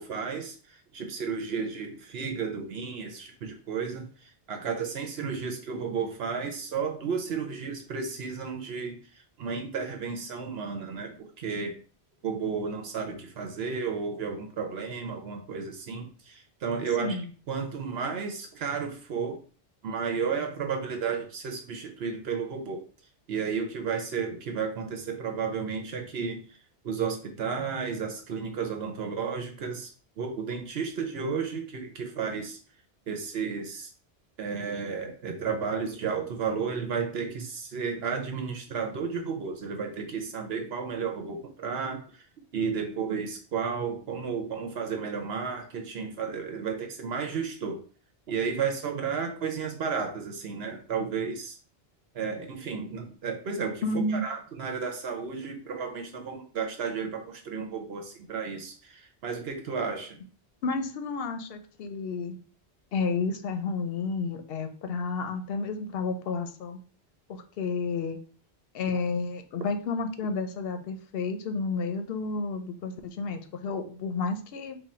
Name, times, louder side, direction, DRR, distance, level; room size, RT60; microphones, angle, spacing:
voice 1, 0.0-11.7 12.2-17.2 17.5-19.4 19.8-22.8 23.3-26.6 26.8-32.6 33.1-33.9 34.4-42.2 42.5-47.8 48.3-51.6 52.1-60.2, right 6 dB, 70° right, 4 dB, 0.9 m, -33 dB
voice 2, 17.0-17.3 53.8-54.2 60.6-62.4 62.9-66.8 67.3-68.2 68.7-74.8, left 4 dB, 65° left, 8 dB, 0.8 m, -31 dB
3.7 x 2.3 x 4.2 m, 0.41 s
omnidirectional pair, 1.1 m